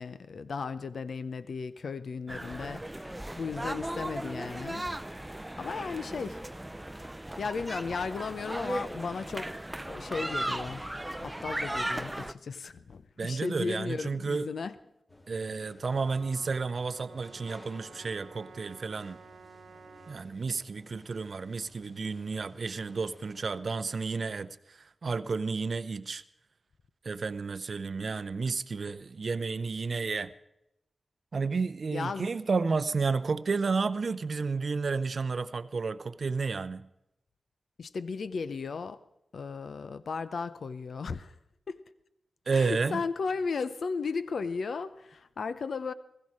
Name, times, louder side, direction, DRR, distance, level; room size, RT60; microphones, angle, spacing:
voice 1, 0.0-4.8 5.6-6.5 7.4-10.9 11.2-14.7 31.9-32.3 37.8-39.0 39.3-41.3 41.7-41.8 42.5-45.9, left 5 dB, 75° left, 0.7 m, -35 dB
sound 1, 2.3-12.3, right 1 dB, 15° right, 0.5 m, -37 dB
voice 2, 13.2-14.5 15.3-19.2 20.1-26.2 27.0-30.3 31.3-36.9 42.5-43.0, right 4 dB, 65° right, 0.5 m, -31 dB
sound 2, 15.1-23.5, left 1 dB, 35° left, 2.7 m, -55 dB
Trumpet, 15.8-20.3, right 5 dB, 90° right, 1.1 m, -52 dB
15.5 x 14.5 x 4.8 m
cardioid pair, 45°, 0 cm